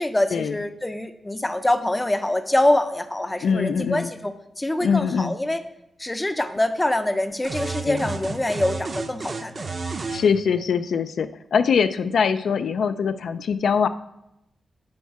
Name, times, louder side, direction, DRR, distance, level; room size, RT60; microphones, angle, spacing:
voice 1, 0.0-5.6 6.0-9.7, left 1 dB, 10° left, 10 dB, 0.5 m, -24 dB
voice 2, 3.4-4.1 4.8-5.3 7.9-8.0 10.1-13.9, left 6 dB, 75° left, 11 dB, 0.3 m, -22 dB
sound 1, 7.4-10.3, right 4 dB, 35° right, 0.6 m, -31 dB
9.6 x 4.6 x 4.6 m, 0.86 s
wide cardioid pair, 160°, 0 cm